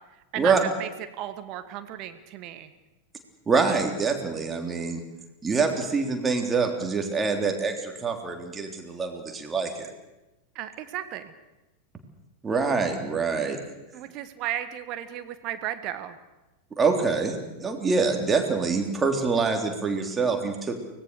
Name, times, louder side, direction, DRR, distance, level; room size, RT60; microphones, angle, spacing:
voice 1, 0.3-0.9 1.2-2.7 10.5-11.3 13.9-16.2, right 12 dB, 40° right, 10 dB, 1.5 m, -34 dB
voice 2, 3.5-5.0 5.4-9.9 12.4-13.6 16.8-20.8, right 4 dB, 15° right, 3 dB, 3.4 m, -25 dB
24.5 x 19.0 x 6.8 m, 1.0 s
figure-of-eight pair, 90°, 0 cm